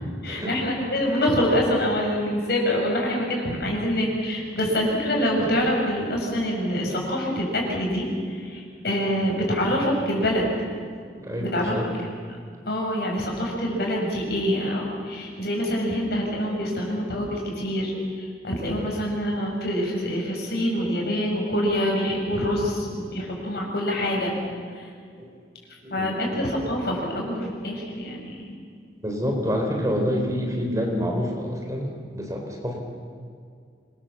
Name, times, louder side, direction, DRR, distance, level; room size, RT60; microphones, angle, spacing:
voice 1, 0.2-10.5 11.4-11.8 12.1-12.2 12.7-24.3 24.7-24.9 25.9-28.5, equal, 60° left, -1 dB, 7.1 m, -25 dB
voice 2, 11.2-11.9 15.9-16.1 16.6-16.8 23.0-23.1 25.2-25.3 25.8-26.2 29.0-32.8, equal, 20° right, 1 dB, 3.9 m, -28 dB
26.5 x 22.5 x 7.2 m, 2.2 s
head